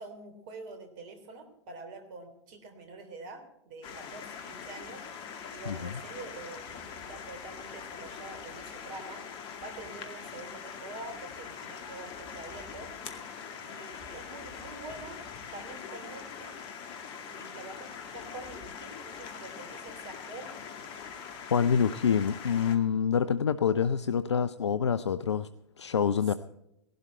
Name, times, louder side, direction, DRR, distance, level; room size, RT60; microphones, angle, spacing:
voice 1, 0.0-5.1 5.5-6.8 7.1-9.2 9.6-12.9 13.6-15.2 15.5-16.5 17.3-20.5 26.3-26.4, right 3 dB, 45° right, 7 dB, 3.4 m, -46 dB
sound 1, 3.8-22.8, left 6 dB, 35° left, 2.1 m, -43 dB
voice 2, 21.5-25.5 25.8-26.3, left 7 dB, 75° left, 13 dB, 0.6 m, -26 dB
17.5 x 12.0 x 4.4 m, 0.83 s
figure-of-eight pair, 105°, 15 cm